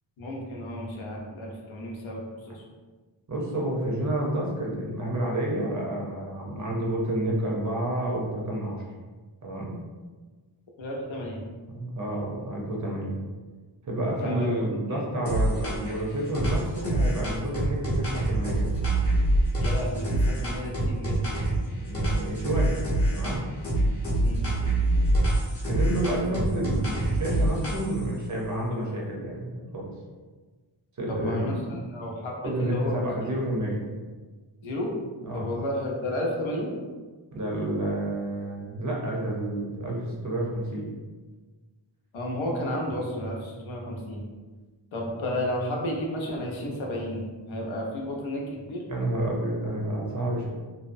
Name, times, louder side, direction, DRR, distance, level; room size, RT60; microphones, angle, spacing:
voice 1, 0.2-2.6 10.8-11.4 14.2-15.0 19.6-21.2 24.2-24.5 31.1-33.3 34.6-34.9 35.3-36.7 42.1-44.3 44.9-48.8, left 1 dB, 85° left, -1 dB, 0.7 m, -32 dB
voice 2, 3.3-8.8 9.4-9.8 11.7-13.2 13.8-18.7 21.8-22.8 23.1-23.4 25.7-29.9 31.0-31.8 32.4-33.8 35.2-35.5 37.3-40.9 48.9-50.5, right 1 dB, 40° right, -3 dB, 0.6 m, -29 dB
sound 1, 15.3-16.0 16.3-21.6 21.9-23.4 23.6-28.1, right 1 dB, 30° left, 0.7 m, -25 dB
2.7 x 2.0 x 2.5 m, 1.3 s
wide cardioid pair, 120°, 46 cm